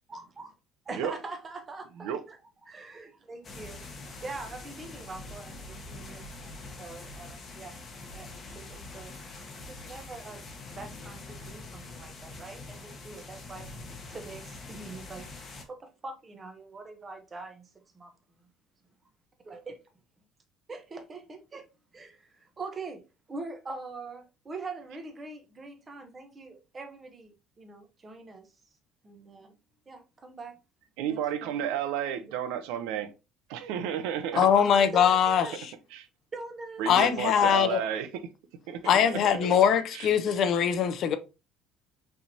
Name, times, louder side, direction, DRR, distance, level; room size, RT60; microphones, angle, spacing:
voice 1, 0.1-0.5 0.8-2.4 2.7-3.8 4.2-7.8 8.1-9.1 9.6-10.5 10.7-13.7 14.1-15.4 15.7-17.7 17.9-18.1 19.5-19.7 20.7-21.7 21.9-23.0 23.3-28.5 29.0-29.5 29.9-30.6 31.1-31.7 34.3-35.5 36.3-37.0 37.5-38.0 39.1-39.6, right 3 dB, 20° right, 1.0 m, -43 dB
sound 1, 3.4-15.7, left 2 dB, 25° left, 1.0 m, -44 dB
voice 2, 31.0-33.1 33.5-34.5 35.9-36.1 36.8-38.1 38.7-38.9 39.9-40.1, right 9 dB, 85° right, 0.7 m, -32 dB
voice 3, 34.4-35.7 36.9-37.8 38.9-41.2, left 8 dB, 45° left, 0.6 m, -22 dB
5.5 x 3.4 x 2.7 m
cardioid pair, 165°, 0 cm